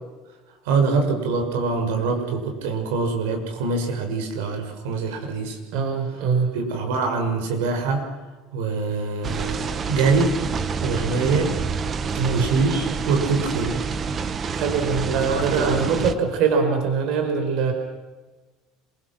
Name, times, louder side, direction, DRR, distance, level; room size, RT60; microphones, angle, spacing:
voice 1, 0.6-5.6 6.5-8.1 8.5-10.4 10.8-11.6 12.3-13.8 15.0-16.1, right 4 dB, 90° right, 3 dB, 6.2 m, -24 dB
voice 2, 5.7-6.5 12.2-12.4 14.5-17.7, right 5 dB, 50° right, 4 dB, 4.7 m, -23 dB
sound 1, 9.2-16.1, right 5 dB, 20° right, 1.1 m, -28 dB
27.0 x 23.0 x 6.2 m, 1.2 s
cardioid pair, 175°, 0 cm